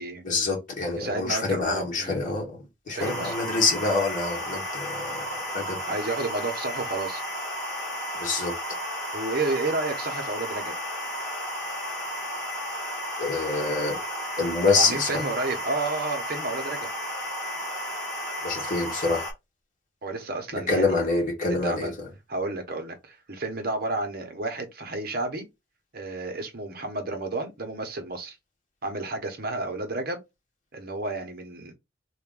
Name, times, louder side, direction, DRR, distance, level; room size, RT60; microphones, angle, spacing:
voice 1, 0.2-5.8 8.2-8.5 13.2-14.0 14.4-15.3 18.4-19.3 20.7-22.1, left 3 dB, 40° left, 1.5 m, -26 dB
voice 2, 1.0-2.2 2.9-3.3 5.9-7.2 9.1-10.8 14.7-16.9 20.0-21.0 21.6-21.9 22.3-25.5 25.9-28.4 28.8-30.2 30.7-31.7, right 2 dB, 50° right, 1.0 m, -31 dB
sound 1, 3.0-19.3, equal, ahead, 1.7 m, -33 dB
3.5 x 2.5 x 3.8 m
head